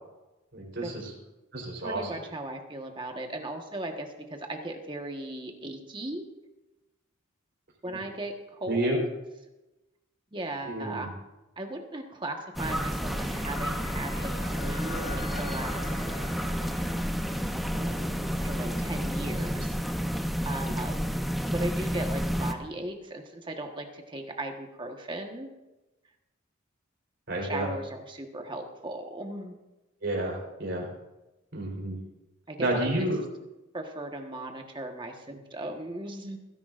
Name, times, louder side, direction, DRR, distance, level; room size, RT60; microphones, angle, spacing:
voice 1, 0.5-1.0 1.5-2.0 7.8-8.0 8.7-9.0 10.6-11.1 27.3-27.7 30.0-30.9 31.5-32.0 32.6-33.2, right 1 dB, 55° right, -1 dB, 4.1 m, -30 dB
voice 2, 1.8-6.3 7.8-9.1 10.3-11.1 11.6-14.3 14.6-16.0 17.7-19.8 20.1-21.0 21.4-25.5 27.4-29.6 32.5-33.1 33.7-36.4, right 1 dB, 25° right, 3 dB, 1.3 m, -37 dB
sound 1, 12.4-19.3, left 2 dB, 60° left, 2.9 m, -45 dB
sound 2, 12.5-22.5, equal, ahead, 0.7 m, -30 dB
29.0 x 11.0 x 2.5 m, 1.0 s
head